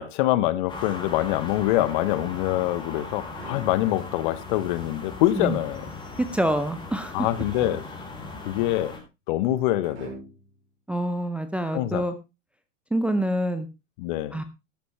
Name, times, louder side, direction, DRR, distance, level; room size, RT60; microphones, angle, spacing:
voice 1, 0.0-5.9 7.1-7.8 8.4-8.9 9.3-10.2 11.7-12.0 14.0-14.4, left 15 dB, 40° left, 0.9 m, -25 dB
sound 1, 0.7-9.0, left 3 dB, 10° left, 3.9 m, -38 dB
sound 2, 2.1-2.7 3.3-4.3 7.5-8.3 9.8-10.6, right 3 dB, 60° right, 5.3 m, -43 dB
voice 2, 6.2-7.3 10.9-12.1 12.9-13.7 14.3-14.4, right 1 dB, 5° right, 0.6 m, -26 dB
12.5 x 10.5 x 3.1 m
figure-of-eight pair, 100°, 38 cm